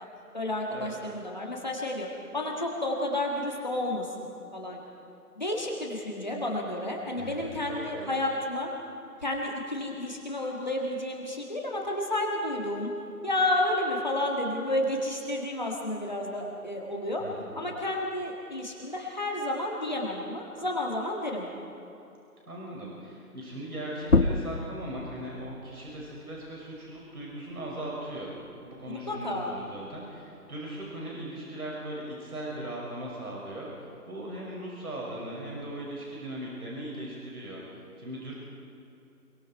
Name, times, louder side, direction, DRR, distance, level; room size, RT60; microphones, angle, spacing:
voice 1, 0.3-2.1 2.3-4.3 4.5-4.8 5.3-8.7 9.2-12.9 13.2-17.2 17.5-21.5 29.1-29.5, left 1 dB, 30° left, -2 dB, 1.7 m, -31 dB
voice 2, 7.2-8.2 17.2-17.6 22.5-37.6 38.0-38.4, right 1 dB, 65° right, -4 dB, 6.5 m, -39 dB
sound 1, 24.0-29.2 29.6-31.4, left 3 dB, 55° left, 1.1 m, -31 dB
25.5 x 23.0 x 4.6 m, 2.8 s
figure-of-eight pair, 170°, 47 cm